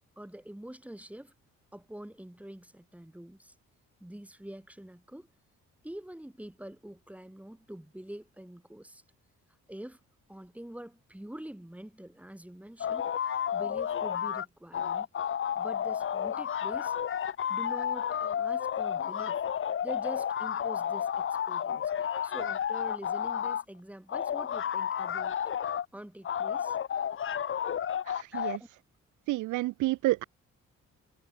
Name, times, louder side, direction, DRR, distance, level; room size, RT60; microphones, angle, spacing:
voice 1, 0.2-1.3 1.7-3.5 4.0-5.3 5.8-9.0 9.7-10.0 10.3-15.1 15.6-17.0 17.5-19.4 19.8-21.8 22.2-25.4 25.9-26.8 28.3-28.7, right 1 dB, 5° right, 6.9 m, -45 dB
sound 1, 12.8-14.4 14.7-23.6 24.1-25.8 26.2-28.6, left 9 dB, 40° left, 0.9 m, -31 dB
voice 2, 28.1-28.6 29.3-30.2, right 18 dB, 80° right, 0.5 m, -29 dB
cardioid pair, 90°, 30 cm